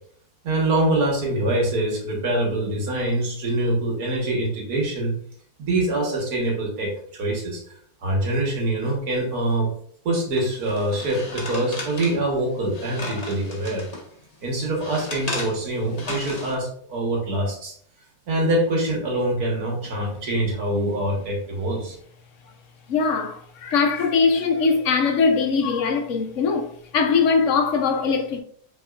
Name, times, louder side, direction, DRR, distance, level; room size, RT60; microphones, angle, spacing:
voice 1, 0.4-5.1 5.6-7.6 8.0-9.7 10.1-13.9 14.4-17.8 18.3-22.0, right 1 dB, 70° right, 1.9 m, -24 dB
sound 1, 10.3-14.0 14.5-16.6, left 2 dB, 30° left, 0.9 m, -35 dB
voice 2, 22.9-28.4, left 5 dB, 60° left, 0.9 m, -21 dB
5.5 x 3.6 x 2.4 m
omnidirectional pair, 1.7 m